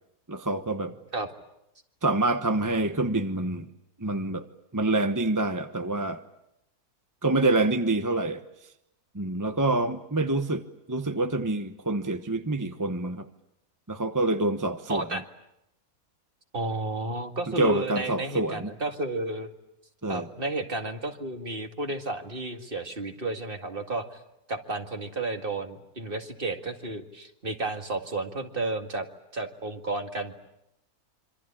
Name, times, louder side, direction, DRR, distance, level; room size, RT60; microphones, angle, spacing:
voice 1, 0.3-0.9 2.0-3.7 4.0-4.4 4.7-6.2 7.2-8.4 9.1-10.6 10.9-13.3 13.9-15.1 17.5-18.7 20.0-20.3, right 2 dB, 15° right, 8 dB, 0.9 m, -26 dB
voice 2, 14.9-15.2 16.5-19.5 20.1-24.2 24.5-29.1 29.3-30.3, right 2 dB, 35° right, 5 dB, 2.2 m, -32 dB
26.5 x 25.5 x 8.8 m, 0.84 s
omnidirectional pair, 1.6 m